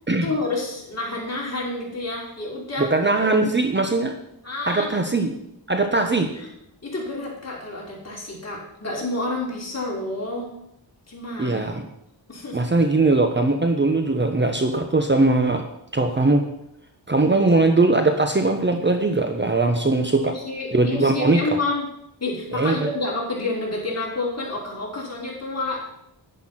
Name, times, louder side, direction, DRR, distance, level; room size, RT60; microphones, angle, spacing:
voice 1, 0.2-2.9 3.2-3.3 4.4-5.2 6.3-6.5 6.8-10.5 11.1-11.7 12.3-12.6 17.3-17.5 20.2-21.9 22.2-25.8, left 2 dB, 35° left, -3 dB, 5.3 m, -29 dB
voice 2, 2.8-4.1 4.7-5.3 5.7-6.3 11.4-11.8 12.5-15.6 15.9-16.5 17.1-20.3 20.7-21.4 22.5-22.9, right 3 dB, 25° right, 5 dB, 1.1 m, -20 dB
11.0 x 10.5 x 5.9 m, 0.81 s
wide cardioid pair, 95°, 44 cm